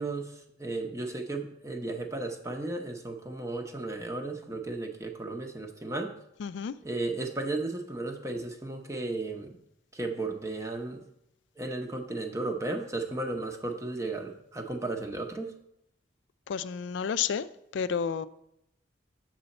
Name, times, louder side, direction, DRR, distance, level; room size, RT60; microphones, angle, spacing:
voice 1, 0.0-6.1 6.8-9.6 9.9-11.1 11.6-15.5, right 2 dB, 15° right, 3 dB, 0.7 m, -34 dB
voice 2, 6.4-6.7 16.5-17.5 17.7-18.3, left 7 dB, 65° left, 14 dB, 0.3 m, -30 dB
7.6 x 6.7 x 4.2 m, 0.80 s
head